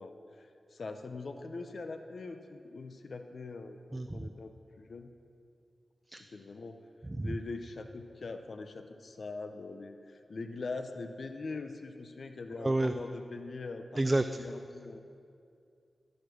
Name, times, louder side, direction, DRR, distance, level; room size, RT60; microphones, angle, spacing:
voice 1, 0.0-5.1 6.3-6.9 7.2-14.0 14.4-15.0, left 3 dB, 70° left, 7 dB, 0.5 m, -42 dB
voice 2, 3.9-4.3 6.1-6.2 7.2-7.3 12.6-12.9 14.0-14.2, right 2 dB, 25° right, 8 dB, 0.3 m, -29 dB
12.0 x 5.1 x 6.1 m, 2.4 s
cardioid pair, 50°, 0 cm